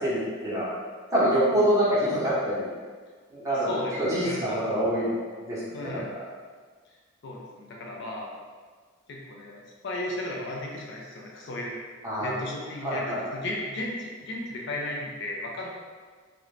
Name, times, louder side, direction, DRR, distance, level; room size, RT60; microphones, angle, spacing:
voice 1, 0.0-0.7 1.1-2.7 3.3-3.7 4.0-6.0 12.0-12.3 12.8-13.2, equal, 15° right, -10 dB, 0.9 m, -26 dB
voice 2, 3.6-4.6 5.7-6.1 7.2-8.3 9.1-11.7 12.2-15.7, left 1 dB, 60° left, -2 dB, 0.4 m, -35 dB
2.4 x 2.1 x 3.1 m, 1.5 s
head